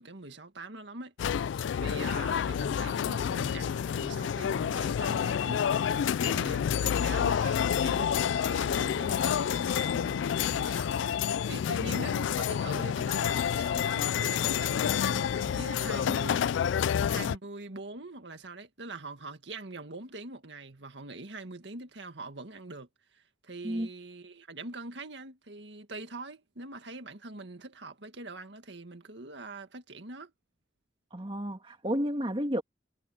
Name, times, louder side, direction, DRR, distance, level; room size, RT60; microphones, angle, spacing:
voice 1, 0.0-1.5 1.8-30.3, right 2 dB, 70° right, 2.0 m, -43 dB
sound 1, 1.2-17.4, left 8 dB, 80° left, 0.3 m, -29 dB
voice 2, 31.1-32.6, equal, 30° right, 1.9 m, -31 dB
head